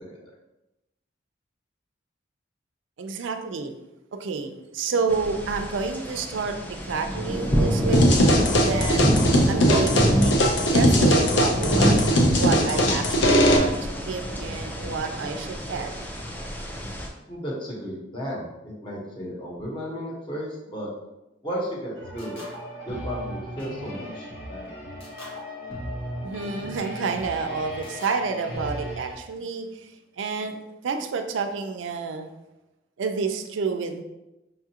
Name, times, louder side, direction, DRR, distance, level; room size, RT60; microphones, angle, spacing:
voice 1, 3.0-3.7 4.1-9.1 9.5-10.4 10.7-12.1 12.4-15.9 26.2-29.9 30.2-30.6 30.8-32.3 33.0-34.0, right 4 dB, 80° right, 6 dB, 0.4 m, -29 dB
sound 1, 5.1-17.1, equal, 10° left, 0.4 m, -27 dB
sound 2, 7.9-13.6, equal, 65° left, 0.6 m, -20 dB
voice 2, 17.3-20.9 21.4-22.4 22.8-24.8, equal, 25° left, -4 dB, 1.0 m, -34 dB
sound 3, 22.0-29.1, equal, 90° left, 1.3 m, -36 dB
5.3 x 2.4 x 2.8 m, 0.97 s
head